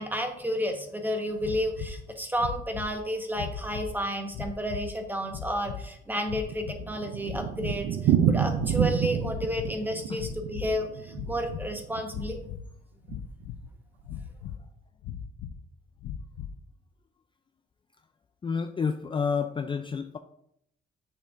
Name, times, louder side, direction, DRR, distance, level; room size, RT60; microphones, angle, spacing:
voice 1, 0.0-12.4, equal, 10° right, 4 dB, 1.2 m, -31 dB
sound 1, 1.4-2.0 2.4-3.0 3.3-4.0 4.3-4.9 5.3-5.8 6.3-6.9 7.2-7.9 8.2-8.8 9.2-9.7 10.1-10.8 11.1-11.7 12.1-12.7 13.1-13.7 14.0-14.6 15.0-15.6 16.0-16.6, left 8 dB, 85° left, 0.6 m, -38 dB
Thunder, 6.2-12.4 12.7-12.8 13.1-13.2 13.4-13.5 14.1-14.4, right 9 dB, 85° right, 0.5 m, -28 dB
voice 2, 18.4-20.2, left 5 dB, 25° left, 7 dB, 0.4 m, -29 dB
8.4 x 6.7 x 2.5 m, 0.74 s
cardioid pair, 90°, 20 cm